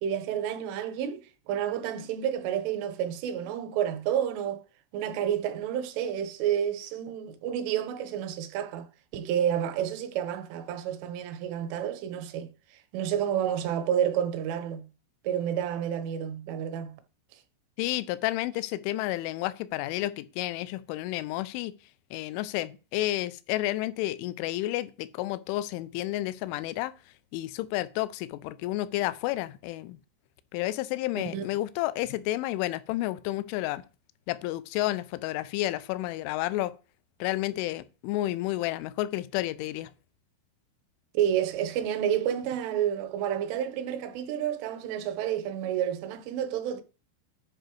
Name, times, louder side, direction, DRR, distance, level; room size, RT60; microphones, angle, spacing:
voice 1, 0.0-4.6 4.9-8.9 9.1-12.5 12.9-14.8 15.2-17.0 31.2-31.5 41.1-46.8, right 9 dB, 80° right, 3.3 m, -30 dB
voice 2, 17.8-21.7 22.1-26.9 27.3-30.0 30.5-33.8 34.3-36.7 37.2-39.9, left 16 dB, 85° left, 2.9 m, -31 dB
10.5 x 5.0 x 4.6 m
omnidirectional pair, 5.7 m